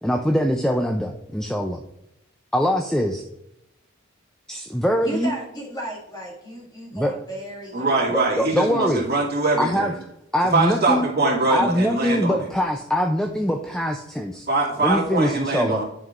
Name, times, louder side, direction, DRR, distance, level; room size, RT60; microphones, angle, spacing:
voice 1, 0.0-1.8 2.5-3.2 4.5-5.3 6.9-7.1 8.1-9.0 9.6-10.0 10.3-11.1 11.5-14.5 14.8-15.8, equal, 5° left, 0.4 m, -23 dB
voice 2, 5.0-8.1, right 1 dB, 20° left, 1.9 m, -34 dB
voice 3, 7.7-10.0 10.5-12.5 14.5-15.8, right 2 dB, 50° right, 2.2 m, -22 dB
10.5 x 5.5 x 2.4 m
head